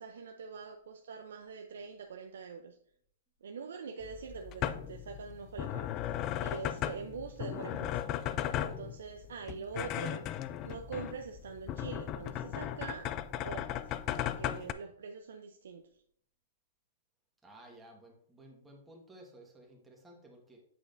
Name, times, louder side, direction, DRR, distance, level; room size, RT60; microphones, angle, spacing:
voice 1, 0.0-2.8 3.4-8.0 8.6-10.2 10.6-13.1 13.4-13.8 14.2-15.9, right 5 dB, 80° right, 0.6 m, -44 dB
sound 1, 4.0-14.7, left 11 dB, 30° left, 0.3 m, -37 dB
voice 2, 17.4-20.6, right 1 dB, 10° right, 1.4 m, -55 dB
8.4 x 4.9 x 2.6 m
hypercardioid pair, 145°, 0 cm